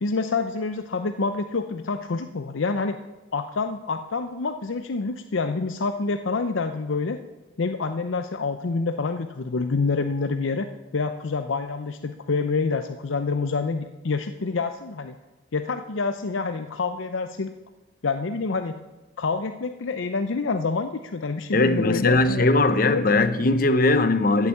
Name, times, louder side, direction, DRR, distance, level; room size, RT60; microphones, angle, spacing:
voice 1, 0.0-3.0 3.3-7.2 7.6-10.7 10.9-15.2 15.5-17.5 18.0-18.8 19.2-22.5 22.9-23.2, left 4 dB, 85° left, 8 dB, 0.6 m, -27 dB
voice 2, 21.5-24.5, left 2 dB, 45° left, 11 dB, 0.9 m, -20 dB
14.0 x 8.1 x 7.2 m, 1.1 s
head